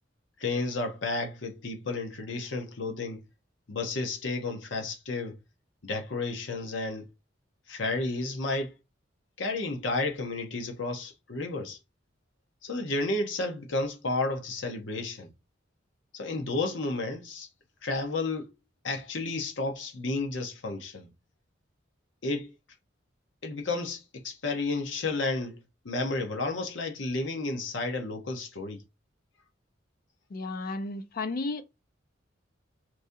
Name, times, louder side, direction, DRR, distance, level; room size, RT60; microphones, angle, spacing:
voice 1, 0.4-3.2 3.7-5.4 5.8-7.1 7.7-8.7 9.4-11.8 12.6-15.3 16.1-17.5 17.8-18.5 18.8-21.1 22.2-22.5 23.4-25.6 25.8-28.8, left 3 dB, 75° left, 1.0 m, -32 dB
voice 2, 30.3-31.6, left 3 dB, 50° left, 0.4 m, -33 dB
3.0 x 2.7 x 3.7 m
head